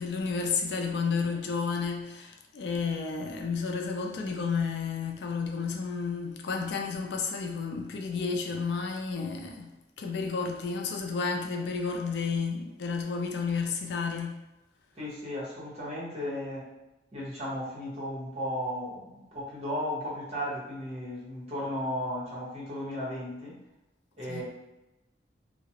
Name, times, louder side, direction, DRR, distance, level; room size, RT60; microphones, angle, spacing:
voice 1, 0.0-14.4 24.3-24.4, left 5 dB, 70° left, 2 dB, 0.3 m, -31 dB
voice 2, 14.9-16.6 17.1-23.5 24.2-24.4, equal, 35° right, -7 dB, 0.9 m, -35 dB
2.3 x 2.0 x 2.8 m, 0.96 s
head